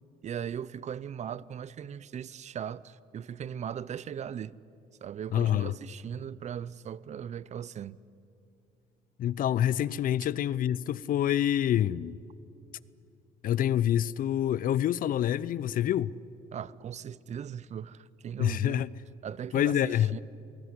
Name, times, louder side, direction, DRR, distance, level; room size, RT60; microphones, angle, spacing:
voice 1, 0.2-4.5 5.0-8.0 16.5-18.9 19.2-20.2, right 8 dB, 45° right, 0.6 m, -38 dB
voice 2, 5.3-5.7 9.2-12.2 13.4-16.1 18.4-18.9 19.5-20.2, left 11 dB, 55° left, 0.6 m, -27 dB
27.0 x 19.0 x 9.6 m
cardioid pair, 110°, 17 cm